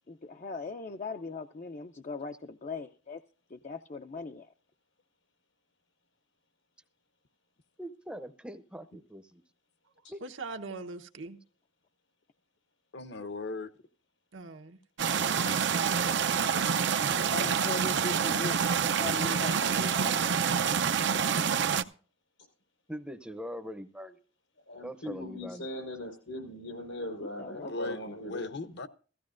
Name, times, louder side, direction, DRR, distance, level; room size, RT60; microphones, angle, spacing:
voice 1, 0.1-3.2 3.5-4.5 17.3-20.2 27.2-27.7, left 4 dB, 40° left, 0.5 m, -40 dB
voice 2, 7.8-9.4 10.1-10.2 22.9-24.2 24.8-25.7, equal, 5° right, 0.6 m, -42 dB
voice 3, 10.2-11.4 14.3-14.8 15.7-16.2, right 3 dB, 80° right, 1.1 m, -42 dB
voice 4, 12.9-13.7 27.7-28.9, left 3 dB, 60° left, 0.8 m, -38 dB
sound 1, 15.0-21.8, right 7 dB, 65° right, 0.6 m, -27 dB
voice 5, 24.7-28.5, left 1 dB, 85° left, 5.1 m, -39 dB
16.0 x 15.0 x 2.5 m
head